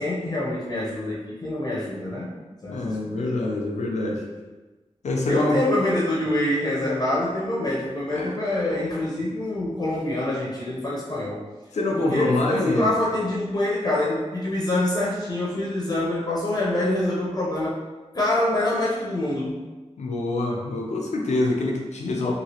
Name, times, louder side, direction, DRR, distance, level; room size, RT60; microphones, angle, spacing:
voice 1, 0.0-2.3 2.6-3.2 5.3-11.4 12.0-17.8 18.1-19.6, left 1 dB, 35° left, -5 dB, 0.6 m, -25 dB
voice 2, 2.7-4.2 5.0-5.6 8.1-8.4 11.7-12.9 20.0-22.3, left 2 dB, 85° left, -1 dB, 0.6 m, -25 dB
2.9 x 2.7 x 2.8 m, 1.2 s
wide cardioid pair, 105°, 11 cm